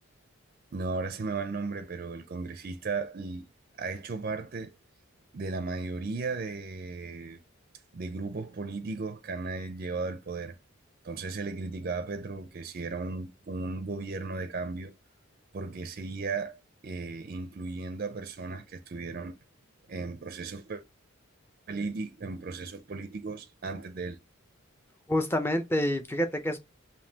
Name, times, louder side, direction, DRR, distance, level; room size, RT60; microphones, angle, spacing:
voice 1, 0.7-3.5 3.8-4.7 5.3-7.4 7.9-10.5 11.0-14.9 15.5-19.4 19.9-20.8 21.7-24.2, right 4 dB, 45° right, 0.4 m, -35 dB
voice 2, 25.1-26.6, left 1 dB, 10° left, 0.5 m, -27 dB
5.2 x 2.7 x 2.8 m
head